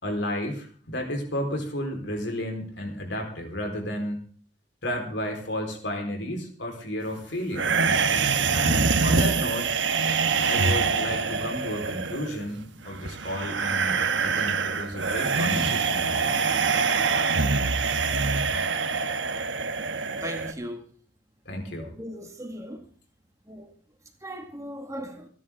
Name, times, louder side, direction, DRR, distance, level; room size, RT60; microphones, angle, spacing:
voice 1, 0.0-4.2 4.8-7.7 8.5-9.8 10.4-16.7 21.5-21.9, equal, 80° left, 4.4 m, -32 dB
sound 1, 7.5-20.5, right 5 dB, 90° right, 1.2 m, -25 dB
voice 2, 20.2-20.9 21.8-22.8 23.5-23.7 24.2-25.3, equal, 20° right, 2.0 m, -37 dB
28.0 x 11.0 x 3.7 m
head